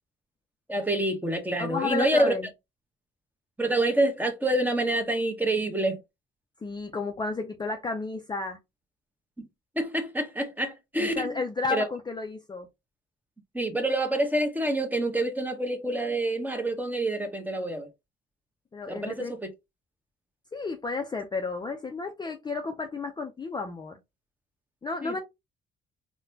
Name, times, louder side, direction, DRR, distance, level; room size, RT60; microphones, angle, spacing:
voice 1, 0.7-2.3 3.6-6.0 9.4-9.5 9.8-11.3 11.7-11.9 13.5-17.9 18.9-19.5 25.0-25.2, right 1 dB, 10° right, 0.9 m, -27 dB
voice 2, 1.6-2.5 6.6-8.6 11.1-12.7 18.7-19.3 20.5-24.0 24.8-25.2, left 4 dB, 20° left, 0.5 m, -32 dB
4.0 x 2.2 x 2.7 m
cardioid pair, 90°, 20 cm